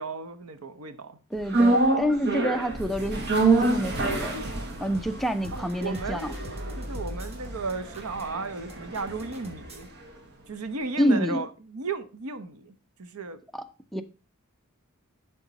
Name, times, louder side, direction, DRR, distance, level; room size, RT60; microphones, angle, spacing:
voice 1, 0.0-1.2 5.5-6.5 6.8-9.9 10.5-13.4, right 3 dB, 80° right, 0.9 m, -35 dB
voice 2, 1.3-3.3 3.6-4.4 4.8-6.3 11.0-11.4 13.5-13.6 13.9-14.0, equal, ahead, 0.5 m, -27 dB
sound 1, 1.5-9.8 10.1-10.2, right 2 dB, 50° right, 1.4 m, -27 dB
sound 2, 3.7-9.9, equal, 30° right, 1.4 m, -45 dB
11.0 x 3.7 x 4.0 m
head